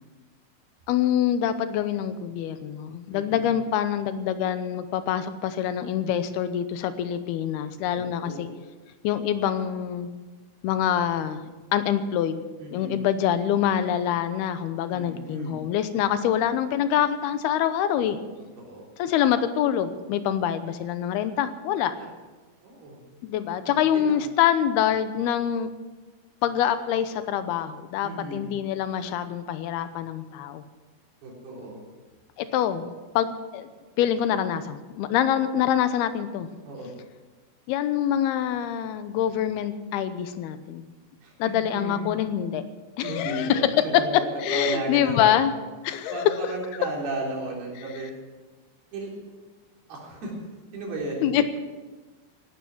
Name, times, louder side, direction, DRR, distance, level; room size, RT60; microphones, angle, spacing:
voice 1, 0.9-8.5 9.0-10.1 10.6-12.4 12.7-18.2 19.0-21.9 23.2-25.7 26.4-30.6 32.4-32.9 33.2-33.7 34.0-36.5 37.7-40.9 41.4-42.6 43.0-43.7 44.4-45.5 45.8-46.5 51.2-51.4, left 10 dB, 90° left, 11 dB, 2.9 m, -25 dB
voice 2, 3.1-3.5 7.9-8.4 12.6-13.0 14.9-15.6 18.6-18.9 21.9-22.1 22.6-23.0 23.7-24.2 28.0-28.4 31.2-31.8 36.6-36.9 41.2-41.3 41.7-42.1 43.0-45.3 46.1-48.1 48.9-49.1 49.9-50.3 50.7-51.3, right 2 dB, 85° right, -2 dB, 5.7 m, -34 dB
16.5 x 12.0 x 6.1 m, 1.3 s
omnidirectional pair, 4.4 m